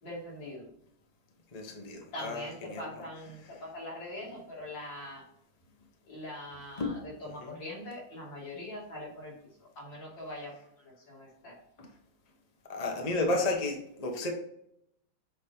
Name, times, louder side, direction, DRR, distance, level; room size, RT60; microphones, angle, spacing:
voice 1, 0.0-0.7 2.1-5.2 6.1-9.3 9.8-11.6, left 1 dB, 60° left, -5 dB, 3.4 m, -42 dB
voice 2, 1.5-3.0 6.8-6.9 7.4-7.5 12.7-14.3, left 2 dB, 30° left, 2 dB, 0.7 m, -32 dB
7.7 x 4.2 x 3.7 m, 0.75 s
omnidirectional pair, 2.3 m